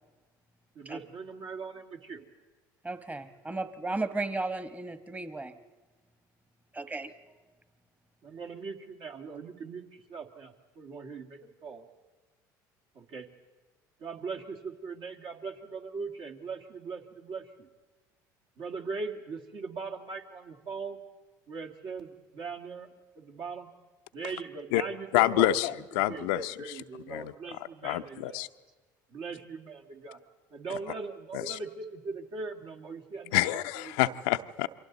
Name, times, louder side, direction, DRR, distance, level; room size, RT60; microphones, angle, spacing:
voice 1, 0.8-2.2 8.2-9.8 10.1-11.9 13.0-13.3 14.0-17.4 18.6-21.0 21.5-22.9 23.2-23.7 24.1-25.1 25.3-25.5 26.1-28.5 29.1-30.2 30.5-33.4, right 4 dB, 55° right, 3 dB, 2.3 m, -40 dB
voice 2, 2.8-5.5 6.7-7.1, right 2 dB, 15° right, 10 dB, 1.4 m, -34 dB
voice 3, 25.1-28.5 30.7-30.8 31.3-31.6 33.3-34.7, left 15 dB, 75° left, 9 dB, 0.7 m, -28 dB
29.0 x 24.0 x 4.1 m, 1.3 s
hypercardioid pair, 70°, 10 cm